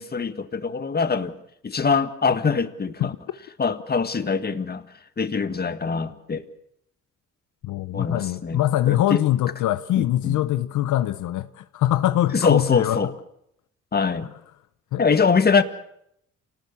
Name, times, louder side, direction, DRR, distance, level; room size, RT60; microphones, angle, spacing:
voice 1, 0.0-1.3 1.6-3.1 3.6-4.8 5.2-6.4 7.9-9.2 9.9-10.4 12.3-13.1 13.9-14.3 15.0-15.6, left 5 dB, 30° left, 1.7 m, -23 dB
voice 2, 7.6-13.0 14.9-15.2, left 13 dB, 80° left, 0.9 m, -23 dB
27.5 x 19.0 x 7.1 m
cardioid pair, 90°, 30 cm